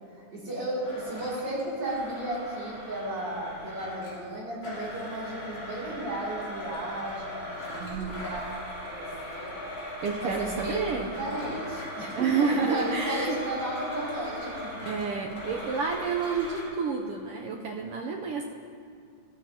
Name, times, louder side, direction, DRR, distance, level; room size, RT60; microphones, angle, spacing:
voice 1, 0.3-9.5 10.2-14.7, right 1 dB, 40° right, -7 dB, 3.2 m, -34 dB
Domestic sounds home sounds, 0.8-4.2 4.6-16.6, equal, 35° left, 3.6 m, -39 dB
voice 2, 7.8-8.3 10.0-11.1 12.1-13.3 14.8-18.4, right 5 dB, 85° right, 0 dB, 1.3 m, -29 dB
16.0 x 12.5 x 2.8 m, 2.2 s
omnidirectional pair, 3.4 m